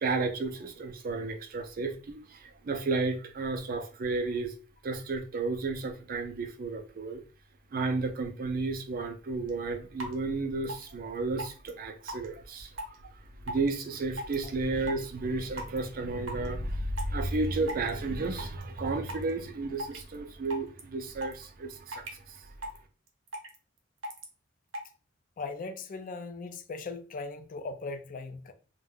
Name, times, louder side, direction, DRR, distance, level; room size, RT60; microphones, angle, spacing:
voice 1, 0.0-4.5 4.8-7.2 7.7-13.1 13.5-22.5, right 3 dB, 45° right, 0.4 m, -32 dB
sound 1, 9.5-9.6 10.0-10.1 10.6-10.9 11.4-11.7 12.1-12.3 12.8-13.0 13.5-13.7 14.1-14.5 14.9-15.1 15.6-15.8 16.3-16.5 17.0-17.3 17.7-17.9 18.2-18.6 19.1-19.3 19.8-20.1 20.4-20.8 21.2-21.4 21.9-22.2 22.6-22.8 23.1-23.6 24.0-24.2 24.7-24.9, right 1 dB, 70° right, 0.8 m, -37 dB
voice 2, 25.4-28.5, left 3 dB, 40° left, 0.4 m, -39 dB
2.5 x 2.2 x 3.5 m
head